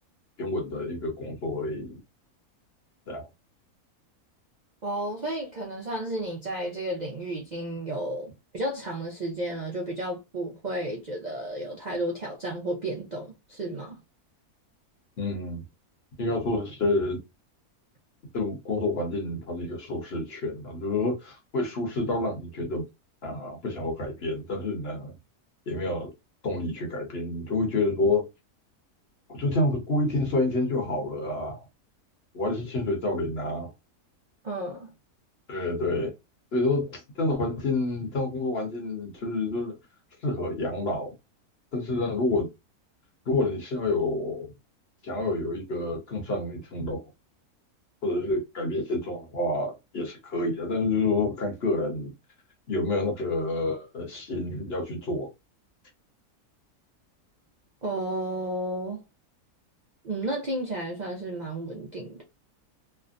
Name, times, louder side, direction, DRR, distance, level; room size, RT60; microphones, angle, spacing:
voice 1, 0.4-2.0 3.1-3.3 15.2-15.6 16.2-17.2 18.3-22.8 23.2-25.1 25.7-26.1 26.4-28.2 29.3-31.6 32.3-33.7 35.5-36.1 36.5-39.8 40.2-41.1 41.7-42.5 43.3-44.5 45.0-47.0 48.0-52.1 52.7-55.3, left 2 dB, 45° left, 1.0 m, -28 dB
voice 2, 4.8-14.0 34.4-34.9 57.8-59.0 60.0-62.2, right 1 dB, 60° right, 0.4 m, -32 dB
3.3 x 2.1 x 2.5 m
omnidirectional pair, 1.6 m